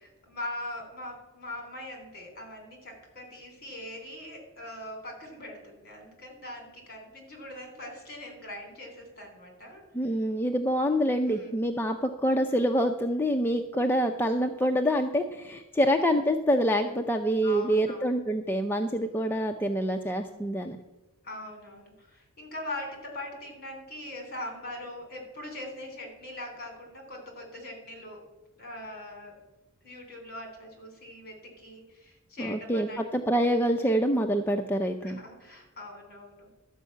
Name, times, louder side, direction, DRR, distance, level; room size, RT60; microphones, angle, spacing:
voice 1, 0.0-10.2 11.2-11.6 13.9-14.1 15.9-16.2 17.4-18.1 21.2-28.2 28.6-29.4 29.8-33.2 35.0-36.5, left 1 dB, 50° left, 3 dB, 3.5 m, -42 dB
voice 2, 9.9-20.8 32.4-35.2, equal, 10° left, 4 dB, 0.5 m, -26 dB
12.5 x 5.5 x 8.4 m, 1.1 s
head